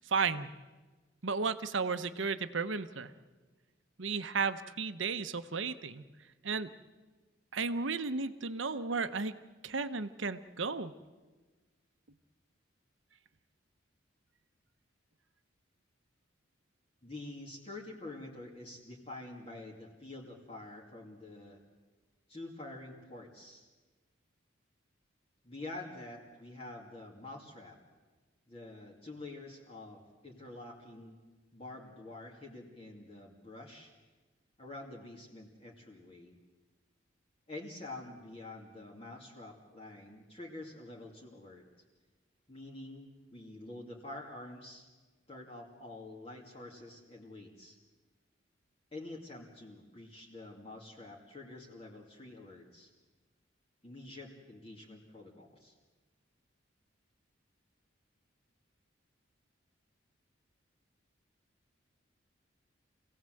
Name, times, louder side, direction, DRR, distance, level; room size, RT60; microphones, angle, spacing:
voice 1, 0.1-0.5 1.2-3.1 4.0-6.0 6.4-6.7 7.5-9.4 9.6-10.9, right 4 dB, 75° right, 11 dB, 1.0 m, -34 dB
voice 2, 17.0-21.6 22.3-23.7 25.4-27.8 28.5-31.2 31.5-33.9 34.6-36.3 37.5-41.7 42.5-44.9 45.3-47.8 48.9-52.9 53.8-55.7, left 2 dB, 30° left, -1 dB, 2.4 m, -47 dB
26.0 x 17.0 x 7.8 m, 1.3 s
head